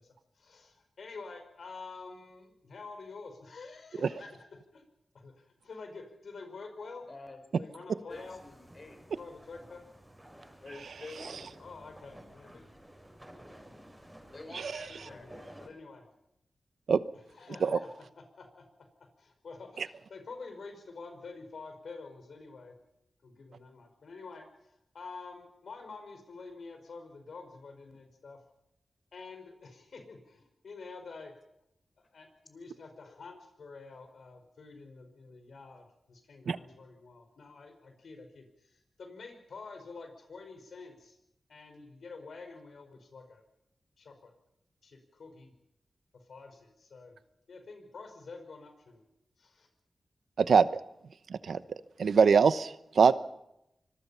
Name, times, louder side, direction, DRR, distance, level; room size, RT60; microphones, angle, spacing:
voice 1, 0.0-4.8 5.1-7.1 7.6-8.4 9.1-9.8 11.6-12.7 15.0-16.1 17.3-17.9 18.2-18.6 19.2-22.7 23.2-24.4 24.9-28.4 29.1-31.3 32.1-41.2 41.5-43.4 44.0-44.3 44.8-45.5 46.1-47.1 47.5-49.0 49.4-49.7, left 4 dB, 80° left, 6 dB, 5.1 m, -48 dB
voice 2, 7.1-7.4 8.1-9.0 10.6-11.6 12.4-12.6 14.3-15.4, left 3 dB, 50° left, 6 dB, 5.1 m, -48 dB
sound 1, 8.1-15.7, equal, 10° right, 6.6 m, -53 dB
voice 3, 50.4-50.8 51.3-51.6 52.0-53.1, right 6 dB, 85° right, 14 dB, 0.9 m, -23 dB
25.0 x 21.0 x 5.7 m, 0.84 s
cardioid pair, 60°, 0 cm